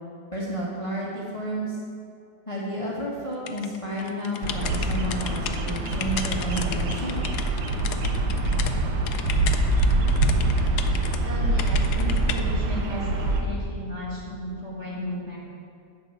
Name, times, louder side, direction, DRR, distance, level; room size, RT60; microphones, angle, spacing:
voice 1, 0.3-1.8 2.5-7.2, equal, 20° left, -5 dB, 1.4 m, -31 dB
sound 1, 3.5-8.7 9.1-11.2 11.6-12.4, left 9 dB, 75° left, 1.2 m, -35 dB
Bird vocalization bird call bird song, 4.4-13.4, right 2 dB, 85° right, 1.5 m, -24 dB
voice 2, 11.2-15.4, equal, 45° right, -4 dB, 2.0 m, -34 dB
10.5 x 4.4 x 7.6 m, 2.5 s
omnidirectional pair, 1.8 m